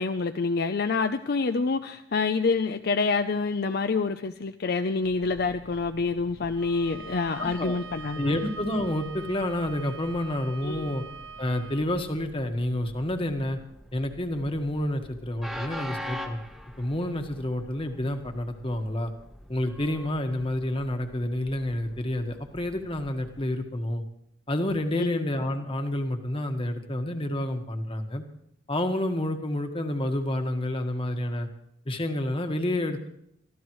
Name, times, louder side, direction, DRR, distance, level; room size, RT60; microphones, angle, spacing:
voice 1, 0.0-8.4 10.6-10.9 24.9-25.2, left 4 dB, 55° left, 8 dB, 0.5 m, -27 dB
Train, 5.0-23.6, equal, ahead, 1.1 m, -45 dB
Bowed string instrument, 6.5-11.9, right 5 dB, 75° right, 0.7 m, -43 dB
voice 2, 7.4-7.7 8.1-11.0 11.4-13.6 13.9-16.4 16.8-19.1 19.5-24.0 24.5-28.2 28.7-31.5 31.8-33.1, left 1 dB, 30° left, 5 dB, 1.4 m, -29 dB
23.5 x 14.5 x 3.1 m, 0.73 s
head